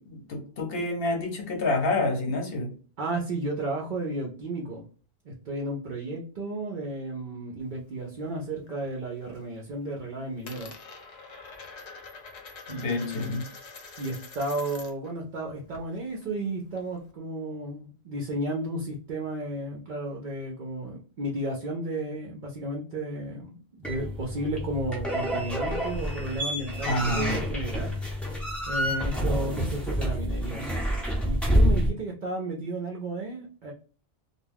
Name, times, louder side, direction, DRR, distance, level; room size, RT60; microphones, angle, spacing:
voice 1, 0.0-2.7 12.7-13.4 26.8-27.4, left 2 dB, 65° left, 2 dB, 1.0 m, -28 dB
voice 2, 3.0-4.8 5.2-10.7 12.7-13.4 14.0-27.9 28.7-30.6 31.2-33.7, right 1 dB, 55° right, -1 dB, 0.6 m, -33 dB
Coin (dropping), 7.6-8.8 9.1-9.6 9.8-15.1 15.4-17.1, left 4 dB, 50° left, 0.6 m, -46 dB
sound 1, 23.8-31.9, equal, ahead, 0.5 m, -28 dB
2.3 x 2.2 x 3.3 m, 0.40 s
omnidirectional pair, 1.1 m